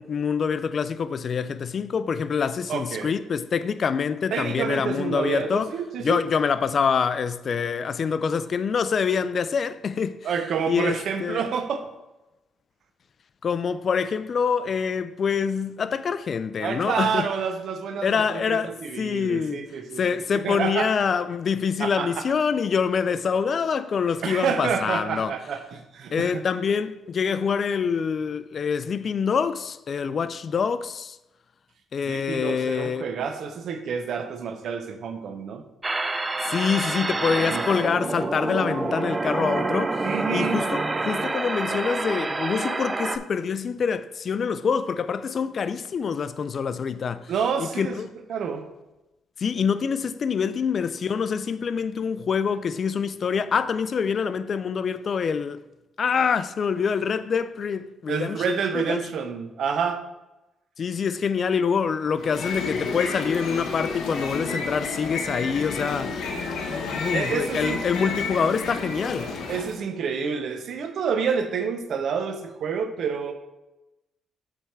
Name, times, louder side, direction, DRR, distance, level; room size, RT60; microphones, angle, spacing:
voice 1, 0.0-5.7 6.0-10.2 10.7-11.4 13.4-17.3 18.0-19.6 20.0-25.3 26.1-31.2 31.9-33.1 36.4-47.3 47.6-48.1 49.4-55.6 56.0-59.0 60.8-66.3 66.7-69.3, left 6 dB, 50° left, 0.3 m, -26 dB
voice 2, 2.7-3.1 4.3-6.2 10.2-11.9 16.6-20.0 20.4-20.9 21.8-22.2 24.2-26.4 32.0-35.6 37.3-37.9 40.0-40.6 47.3-48.0 48.3-48.7 58.1-60.0 67.0-67.8 69.5-73.3, right 6 dB, 65° right, 0.7 m, -28 dB
sound 1, 35.8-43.2, right 3 dB, 20° right, 0.4 m, -27 dB
sound 2, 62.1-69.8, left 4 dB, 75° left, 0.9 m, -31 dB
7.2 x 3.5 x 4.5 m
cardioid pair, 90°, 0 cm